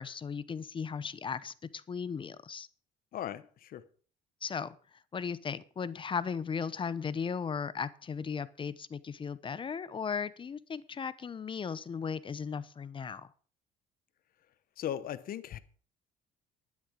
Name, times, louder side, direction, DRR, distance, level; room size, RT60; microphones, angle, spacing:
voice 1, 0.0-2.7 4.4-4.8 5.1-13.3, left 6 dB, 30° left, 0.7 m, -36 dB
voice 2, 3.1-3.8 14.8-15.6, left 10 dB, 60° left, 1.0 m, -38 dB
11.5 x 9.7 x 5.1 m
cardioid pair, 110°, 17 cm